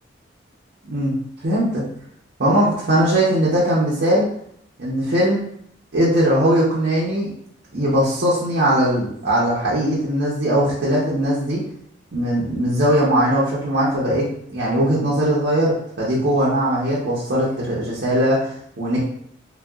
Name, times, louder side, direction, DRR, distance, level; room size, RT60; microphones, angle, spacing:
voice 1, 0.8-1.2 1.4-1.8 2.4-4.3 4.8-5.4 5.9-7.3 7.7-11.6 12.1-19.0, right 1 dB, 65° right, -7 dB, 0.7 m, -20 dB
3.6 x 2.3 x 2.3 m, 0.67 s
head